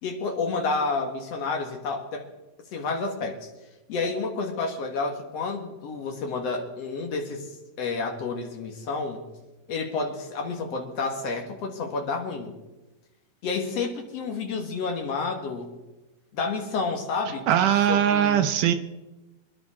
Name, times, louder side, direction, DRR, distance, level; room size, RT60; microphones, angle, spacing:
voice 1, 0.0-2.3 2.7-3.5 3.9-7.5 7.8-9.2 9.7-12.5 13.4-15.7 16.3-18.5, left 4 dB, 55° left, 3 dB, 2.4 m, -30 dB
voice 2, 17.5-18.8, right 10 dB, 75° right, 8 dB, 2.1 m, -21 dB
26.5 x 10.5 x 3.7 m, 1.1 s
omnidirectional pair, 3.9 m